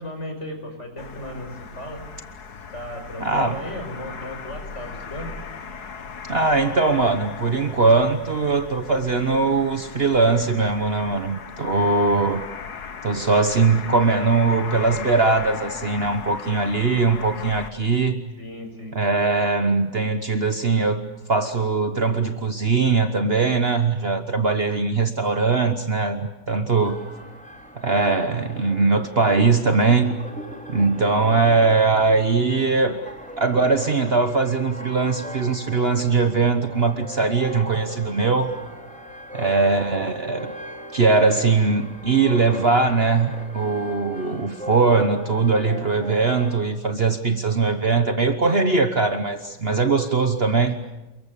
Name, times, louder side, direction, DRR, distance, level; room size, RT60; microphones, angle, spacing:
voice 1, 0.0-2.0 2.7-5.3 18.4-18.9 39.3-39.7, left 1 dB, 45° left, 4 dB, 5.8 m, -35 dB
sound 1, 1.0-17.7, left 6 dB, 90° left, 1.9 m, -37 dB
voice 2, 3.2-3.6 6.3-12.4 13.0-18.2 18.9-21.0 21.3-27.0 27.7-30.1 30.7-33.0 33.4-38.5 39.3-40.5 40.9-50.8, right 4 dB, 40° right, 7 dB, 1.4 m, -21 dB
sound 2, 26.8-46.6, equal, 5° left, 3.8 m, -39 dB
29.5 x 22.0 x 8.4 m, 1.0 s
omnidirectional pair, 1.6 m